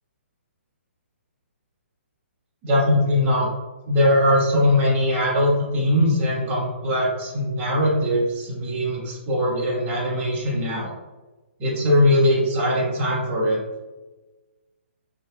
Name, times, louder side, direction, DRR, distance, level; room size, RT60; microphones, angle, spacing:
voice 1, 2.6-3.5 3.8-10.9 11.6-13.6, left 1 dB, 20° right, -6 dB, 1.1 m, -21 dB
4.8 x 2.7 x 2.2 m, 1.2 s
hypercardioid pair, 155°, 7 cm